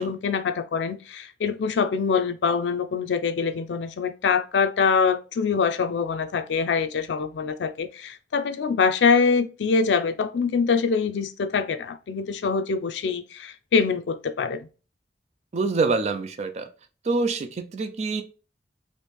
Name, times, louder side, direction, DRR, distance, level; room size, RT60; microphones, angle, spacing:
voice 1, 0.0-14.7, left 5 dB, 85° left, 0.4 m, -24 dB
voice 2, 15.5-16.7 17.0-18.2, right 3 dB, 40° right, 0.4 m, -26 dB
3.1 x 2.6 x 3.3 m
head